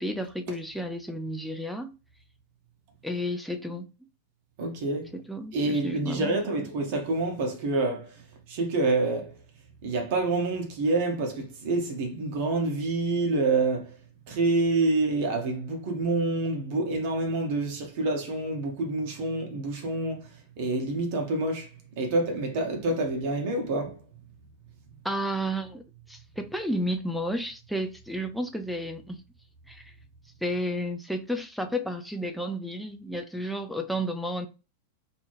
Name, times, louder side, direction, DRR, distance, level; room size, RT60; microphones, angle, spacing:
voice 1, 0.0-1.9 3.0-3.9 5.1-6.6 25.0-25.8 26.1-29.2 29.7-29.9 30.4-34.5, equal, ahead, 0.4 m, -32 dB
voice 2, 4.6-5.1 5.5-8.1 8.5-9.3 9.8-13.9 14.3-20.3 20.6-21.7 22.0-24.0, right 2 dB, 50° right, 0.7 m, -27 dB
2.3 x 2.0 x 3.2 m
figure-of-eight pair, 90°, 0 cm